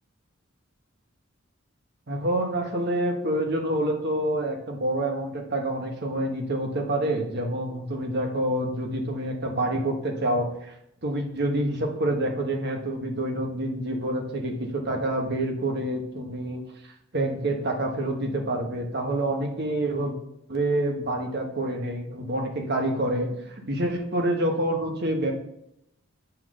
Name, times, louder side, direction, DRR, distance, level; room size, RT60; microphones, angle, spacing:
voice 1, 2.1-10.7 11.0-20.1 20.5-25.3, right 1 dB, 50° right, 2 dB, 1.2 m, -27 dB
7.4 x 3.8 x 6.4 m, 0.78 s
head